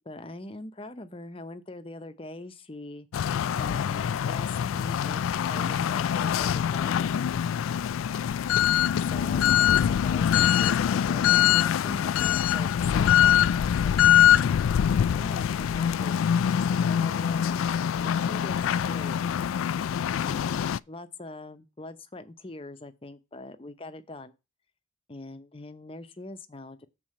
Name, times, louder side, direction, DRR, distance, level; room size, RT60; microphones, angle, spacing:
voice 1, 0.0-3.3 3.5-7.3 9.0-12.7 12.9-14.6 15.1-16.2 16.7-17.6 18.0-19.2 20.2-24.3 25.1-26.9, left 2 dB, 25° left, 0.7 m, -42 dB
sound 1, 3.1-20.8, left 9 dB, 85° left, 0.3 m, -24 dB
7.4 x 4.1 x 6.4 m
head